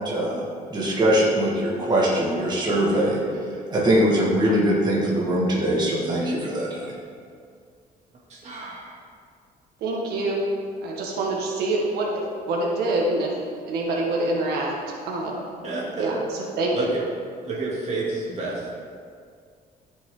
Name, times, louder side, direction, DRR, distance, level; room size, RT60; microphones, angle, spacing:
voice 1, 0.0-3.2 3.7-6.9, right 1 dB, 25° right, -6 dB, 1.9 m, -22 dB
voice 2, 8.3-8.9 15.6-16.1 16.7-17.0 17.4-18.7, right 3 dB, 45° right, -5 dB, 2.5 m, -29 dB
voice 3, 9.8-10.4 10.8-13.3 13.7-15.5 16.0-17.0, right 2 dB, 90° right, -2 dB, 1.6 m, -26 dB
13.5 x 6.2 x 3.8 m, 2.1 s
cardioid pair, 160°, 16 cm